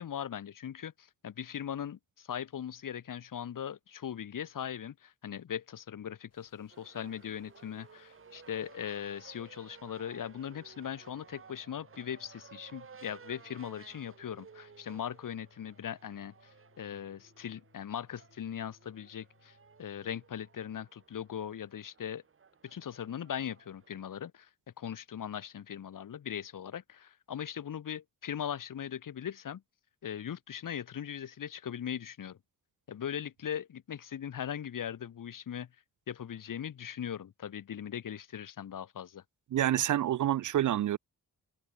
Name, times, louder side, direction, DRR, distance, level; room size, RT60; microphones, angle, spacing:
voice 1, 0.0-22.2 22.6-24.5 24.8-29.6 30.0-32.4 32.9-35.7 36.1-39.2, left 9 dB, 65° left, 2.1 m, -39 dB
sound 1, 6.3-20.6, left 6 dB, 45° left, 6.3 m, -68 dB
sound 2, 6.7-24.2, right 6 dB, 40° right, 1.8 m, -57 dB
voice 2, 39.5-41.0, right 12 dB, 60° right, 0.5 m, -27 dB
open air
wide cardioid pair, 150°, 34 cm